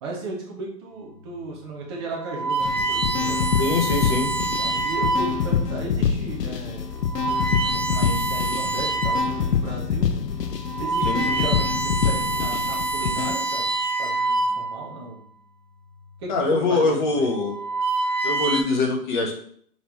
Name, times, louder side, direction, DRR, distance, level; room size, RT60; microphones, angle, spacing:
voice 1, 0.0-3.5 4.4-6.9 7.8-10.1 10.8-15.2 16.2-17.3, right 2 dB, 15° right, -2 dB, 0.7 m, -35 dB
sound 1, 1.3-1.5 2.1-5.5 6.2-6.4 7.0-9.4 9.9-10.0 10.5-15.0 16.0-16.4 17.3-18.6, right 3 dB, 75° right, 1.5 m, -26 dB
sound 2, 2.6-13.3, left 7 dB, 75° left, 0.7 m, -26 dB
voice 2, 3.6-4.3 11.0-11.2 16.3-17.5 18.2-19.3, left 3 dB, 30° left, 1 dB, 0.9 m, -23 dB
5.1 x 3.3 x 3.1 m, 0.62 s
hypercardioid pair, 135°, 49 cm